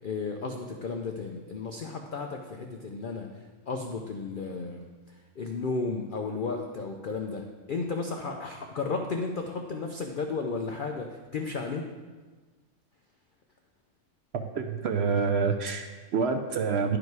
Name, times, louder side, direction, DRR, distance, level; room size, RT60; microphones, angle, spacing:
voice 1, 0.0-3.3 3.7-4.9 5.4-11.9, left 4 dB, 90° left, 3 dB, 0.4 m, -33 dB
voice 2, 14.3-17.0, right 5 dB, 70° right, 5 dB, 0.6 m, -27 dB
10.5 x 5.0 x 4.6 m, 1.3 s
omnidirectional pair, 1.6 m